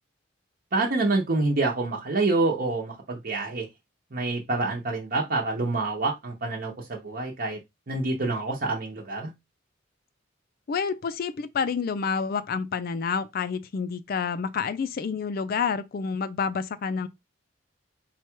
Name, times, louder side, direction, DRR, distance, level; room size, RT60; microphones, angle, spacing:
voice 1, 0.7-3.7 4.1-7.6 7.9-9.3, right 2 dB, 50° right, 0.8 m, -27 dB
voice 2, 10.7-17.1, left 5 dB, 50° left, 0.4 m, -28 dB
4.3 x 2.3 x 4.5 m
head